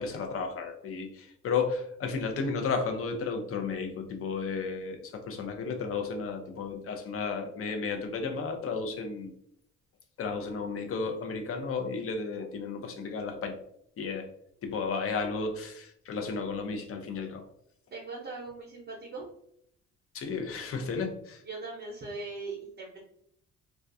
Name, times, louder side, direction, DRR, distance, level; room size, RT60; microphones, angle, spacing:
voice 1, 0.0-9.3 10.2-13.6 14.0-14.3 14.6-17.4 20.1-21.4, left 4 dB, 50° left, 4 dB, 0.5 m, -33 dB
voice 2, 17.9-19.3 21.4-23.0, right 3 dB, 35° right, -4 dB, 0.7 m, -40 dB
2.3 x 2.2 x 2.5 m, 0.70 s
cardioid pair, 90°, 30 cm